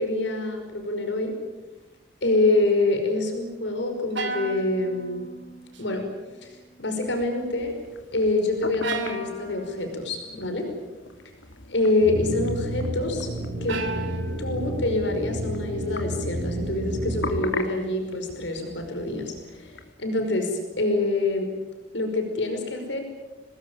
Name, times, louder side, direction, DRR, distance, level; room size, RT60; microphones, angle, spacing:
voice 1, 0.0-1.4 2.2-5.2 5.8-6.1 6.4-6.5 6.8-7.8 8.1-10.7 11.7-13.3 13.6-13.8 14.4-19.3 19.6-19.7 20.0-21.5 21.9-23.0, left 2 dB, 75° left, 4 dB, 5.4 m, -26 dB
sound 1, 4.2-5.8 6.1-6.7 8.8-10.0 13.7-14.8, right 3 dB, 80° right, 3.2 m, -35 dB
sound 2, 7.0-19.9, left 3 dB, 90° left, 2.7 m, -41 dB
sound 3, 12.0-17.4, right 1 dB, 50° right, 4.4 m, -31 dB
26.0 x 20.0 x 9.1 m, 1.2 s
head